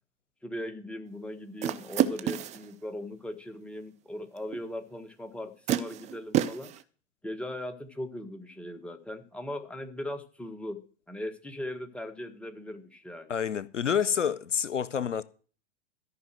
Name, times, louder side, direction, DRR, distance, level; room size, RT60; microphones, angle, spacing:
voice 1, 0.4-6.7 7.2-10.8 11.1-13.3, left 1 dB, 5° left, 1.6 m, -39 dB
sound 1, 1.6-2.7 4.5-4.6 5.7-6.8, right 11 dB, 20° right, 0.6 m, -29 dB
voice 2, 13.3-15.2, left 7 dB, 80° left, 0.7 m, -28 dB
13.5 x 5.6 x 7.7 m
figure-of-eight pair, 95°, 36 cm